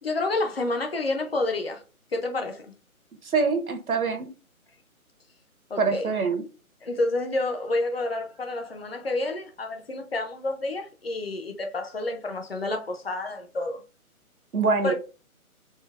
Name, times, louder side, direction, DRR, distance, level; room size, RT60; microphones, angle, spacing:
voice 1, 0.0-1.8 2.1-2.7 5.7-6.1 6.8-13.8 14.8-14.9, left 2 dB, 45° left, 0.7 m, -29 dB
voice 2, 3.2-4.3 5.8-6.4 14.5-14.9, right 4 dB, 75° right, 1.1 m, -24 dB
4.4 x 2.1 x 3.4 m
hypercardioid pair, 170°, 44 cm